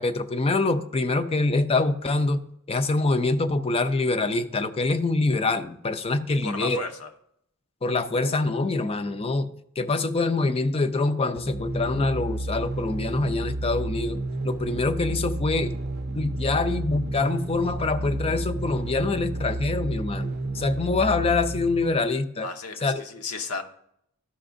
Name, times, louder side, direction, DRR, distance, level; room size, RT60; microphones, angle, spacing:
voice 1, 0.0-6.8 7.8-9.5 9.8-14.2 14.4-15.7 16.2-20.3 20.5-22.5 22.8-23.0, left 3 dB, 25° left, 0.4 m, -25 dB
voice 2, 6.4-7.1 22.4-23.6, left 3 dB, 80° left, 0.8 m, -34 dB
sound 1, 11.3-22.1, right 2 dB, 45° right, 0.5 m, -31 dB
12.5 x 5.8 x 2.6 m
head